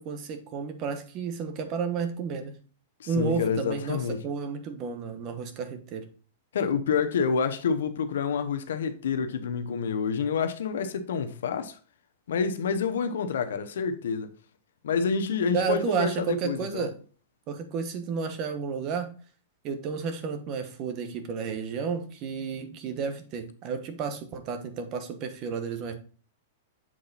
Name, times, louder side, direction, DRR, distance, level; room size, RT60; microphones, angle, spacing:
voice 1, 0.0-2.6 3.1-6.0 15.5-17.0 17.5-19.1 19.6-25.9, right 5 dB, 35° right, 1.2 m, -31 dB
voice 2, 3.0-4.2 6.5-11.8 12.3-14.3 14.8-16.9, left 6 dB, 80° left, 0.8 m, -28 dB
7.6 x 3.9 x 4.0 m
hypercardioid pair, 140°, 0 cm